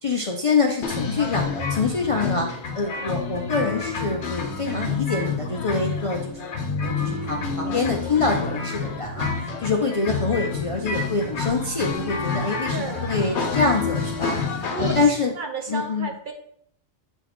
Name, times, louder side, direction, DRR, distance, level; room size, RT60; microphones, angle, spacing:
voice 1, 0.0-2.5 2.7-6.5 6.8-9.3 9.6-14.4 14.8-15.3 15.7-16.1, left 4 dB, 40° left, 1 dB, 0.5 m, -25 dB
sound 1, 0.8-15.0, left 5 dB, 75° left, 1.0 m, -28 dB
voice 2, 12.5-13.1 14.7-15.0 15.3-16.3, right 4 dB, 50° right, 4 dB, 0.8 m, -32 dB
7.8 x 4.0 x 3.0 m, 0.67 s
omnidirectional pair, 1.2 m